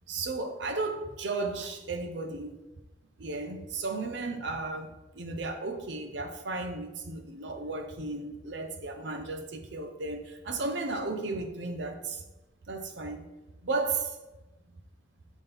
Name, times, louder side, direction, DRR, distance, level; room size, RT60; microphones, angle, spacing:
voice 1, 0.1-2.6 3.2-12.2 12.7-13.3 13.6-14.2, right 3 dB, 65° right, 0.7 m, -34 dB
6.3 x 5.5 x 3.5 m
head